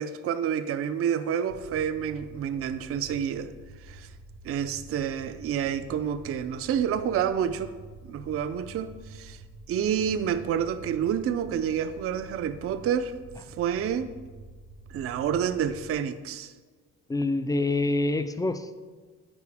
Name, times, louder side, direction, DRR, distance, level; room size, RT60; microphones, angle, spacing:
voice 1, 0.0-3.5 3.9-4.1 4.4-7.7 8.0-9.4 9.7-13.1 13.6-14.1 14.9-16.5, right 8 dB, 50° right, 0.4 m, -28 dB
sound 1, 1.5-15.9, right 2 dB, 85° right, 0.8 m, -48 dB
voice 2, 17.1-18.8, left 2 dB, 10° left, 0.4 m, -26 dB
9.6 x 4.5 x 3.4 m
cardioid pair, 90°, 30 cm